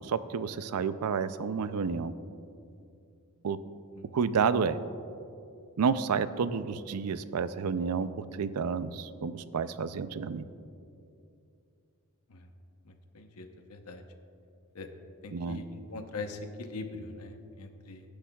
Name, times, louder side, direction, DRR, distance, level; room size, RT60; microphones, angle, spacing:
voice 1, 0.1-2.1 3.4-3.6 4.1-4.8 5.8-10.4 15.3-15.6, right 6 dB, 85° right, 13 dB, 0.4 m, -30 dB
voice 2, 12.8-14.0 14.7-14.9 15.2-18.0, left 3 dB, 85° left, 6 dB, 0.9 m, -42 dB
18.0 x 10.0 x 2.3 m, 2.6 s
head